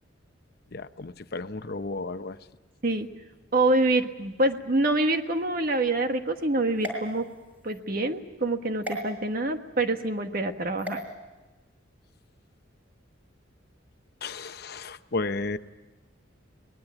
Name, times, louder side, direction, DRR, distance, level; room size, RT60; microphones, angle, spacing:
voice 1, 0.7-2.4 14.2-15.6, left 3 dB, 55° left, 10 dB, 0.8 m, -33 dB
voice 2, 3.5-7.2 7.6-11.0, right 2 dB, 50° right, 6 dB, 1.5 m, -26 dB
sound 1, 6.8-7.8 8.8-9.0 10.8-11.0, right 1 dB, 10° right, 6.1 m, -36 dB
24.0 x 20.0 x 9.0 m, 1.1 s
head